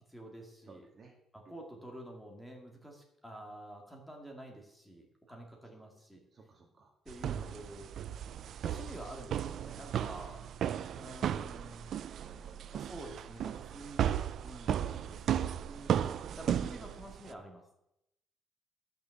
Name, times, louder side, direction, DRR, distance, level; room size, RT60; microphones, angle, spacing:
voice 1, 0.1-0.9 1.3-6.2 7.0-8.0 8.6-10.5 10.9-11.9 12.7-14.0 14.4-17.6, right 1 dB, 5° left, 1 dB, 2.4 m, -49 dB
voice 2, 0.7-1.1 1.5-1.6 6.3-6.9 12.2-12.7, right 4 dB, 35° right, 1 dB, 2.2 m, -57 dB
sound 1, 7.1-17.3, right 9 dB, 60° right, 0.5 m, -35 dB
13.0 x 6.5 x 7.3 m, 0.82 s
cardioid pair, 140°, 0 cm